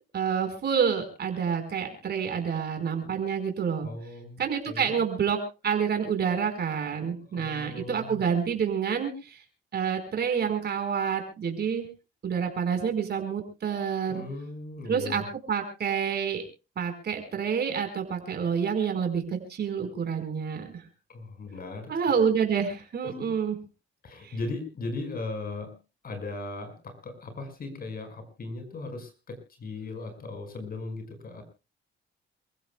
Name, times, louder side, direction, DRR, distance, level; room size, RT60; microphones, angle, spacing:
voice 1, 0.1-3.9 4.4-9.4 9.7-11.9 12.2-14.2 14.9-15.2 15.5-16.4 16.8-20.7 21.9-23.6 24.2-24.3, right 7 dB, 55° right, 5 dB, 4.9 m, -28 dB
voice 2, 3.8-5.0 7.2-8.2 14.1-15.2 21.1-21.9 23.2-23.3 24.0-25.7 26.0-31.4, left 3 dB, 50° left, 7 dB, 5.5 m, -38 dB
28.0 x 15.5 x 2.3 m, 0.31 s
cardioid pair, 90°, 20 cm